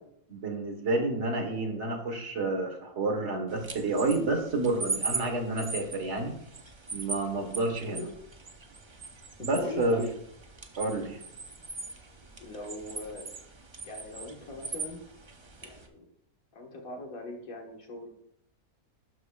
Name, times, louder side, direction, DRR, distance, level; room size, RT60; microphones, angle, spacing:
voice 1, 0.3-6.3 6.9-8.1 9.4-10.0 10.8-11.2, right 2 dB, 50° right, 3 dB, 1.6 m, -29 dB
sound 1, 3.5-15.9, right 3 dB, 35° right, 0.4 m, -40 dB
voice 2, 9.4-10.1 12.4-13.3 13.8-15.0 15.6-16.0 16.5-18.1, left 2 dB, 65° left, 0 dB, 1.9 m, -40 dB
12.0 x 5.0 x 2.3 m, 0.70 s
omnidirectional pair, 1.6 m